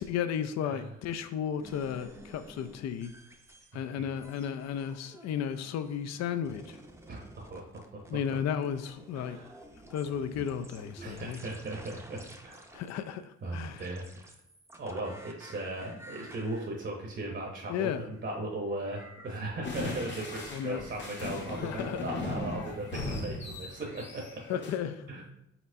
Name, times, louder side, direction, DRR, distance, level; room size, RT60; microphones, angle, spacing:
voice 1, 0.0-3.1 3.7-6.8 8.1-9.4 9.9-11.4 12.7-13.9 17.7-18.0 20.5-20.8 21.6-22.1 24.5-25.0, left 8 dB, 60° left, 10 dB, 0.4 m, -34 dB
sound 1, 1.6-3.8 4.2-6.2 6.4-12.9 13.8-19.4, right 1 dB, 10° right, 0.6 m, -52 dB
voice 2, 7.1-8.0 9.1-9.6 11.0-12.6 13.4-14.1 14.8-24.6 25.1-25.3, right 2 dB, 35° right, 0 dB, 0.8 m, -38 dB
sound 2, 19.6-24.8, left 2 dB, 40° left, 0.9 m, -38 dB
4.2 x 4.1 x 2.6 m, 0.81 s
cardioid pair, 90°, 30 cm